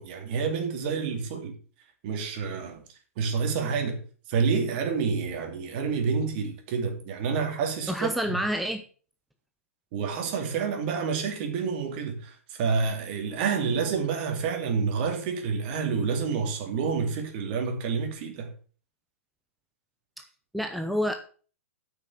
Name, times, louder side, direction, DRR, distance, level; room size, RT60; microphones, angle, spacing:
voice 1, 0.0-1.6 2.0-2.8 3.2-4.0 4.3-8.1 9.9-18.5, right 5 dB, 45° right, 2.6 m, -28 dB
voice 2, 7.9-8.8 20.2-20.3 20.5-21.1, equal, ahead, 0.8 m, -28 dB
8.6 x 6.1 x 7.1 m
figure-of-eight pair, 115°, 7 cm